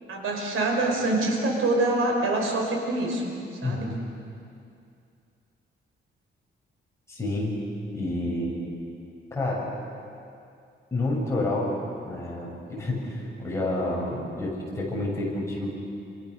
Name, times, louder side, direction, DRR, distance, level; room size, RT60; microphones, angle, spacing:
voice 1, 0.1-3.3 3.6-3.9, right 2 dB, 80° right, 1 dB, 5.2 m, -25 dB
voice 2, 3.6-4.0 7.1-7.6 7.9-8.5 9.3-9.7 10.9-11.8 12.0-15.7, left 2 dB, 15° left, -4 dB, 7.1 m, -29 dB
28.0 x 27.0 x 6.6 m, 2.5 s
wide cardioid pair, 165°, 21 cm